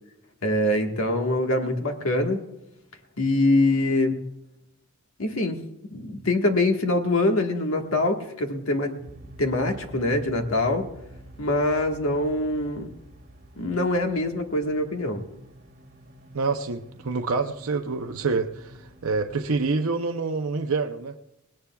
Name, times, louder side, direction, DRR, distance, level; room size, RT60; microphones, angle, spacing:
voice 1, 0.4-2.4 3.2-4.2 5.2-5.6 5.9-8.9 9.4-10.8 11.4-12.9 13.6-15.2, left 2 dB, 70° left, 3 dB, 1.6 m, -24 dB
sound 1, 9.0-19.5, right 1 dB, 50° right, 3.3 m, -48 dB
voice 2, 16.3-21.1, right 4 dB, 75° right, 5 dB, 0.7 m, -27 dB
19.0 x 18.0 x 2.3 m, 0.89 s
head